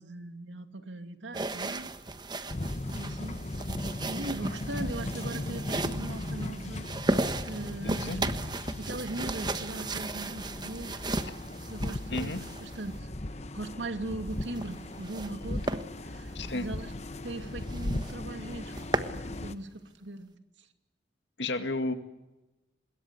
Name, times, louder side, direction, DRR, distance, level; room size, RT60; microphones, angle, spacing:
voice 1, 0.0-1.9 2.9-3.4 4.0-8.3 8.8-11.0 11.7-13.1 13.5-16.9 17.2-18.7 19.1-19.7 20.0-20.7, right 2 dB, 90° right, 7 dB, 2.5 m, -40 dB
sound 1, 1.3-13.0 14.3-15.3 15.7-15.8 16.3-16.5 16.9-17.0 17.3-17.4 17.7-18.1 18.5-19.2, right 2 dB, 25° right, 1.3 m, -35 dB
sound 2, 2.5-19.5, left 1 dB, 35° left, 1.0 m, -37 dB
Chirp tweet, 5.6-19.8, equal, 10° left, 5.4 m, -60 dB
voice 2, 7.8-8.2 11.2-11.4 12.1-12.4 16.3-16.7 21.4-21.9, left 2 dB, 75° left, 8 dB, 2.1 m, -32 dB
25.0 x 21.5 x 8.3 m, 1.0 s
head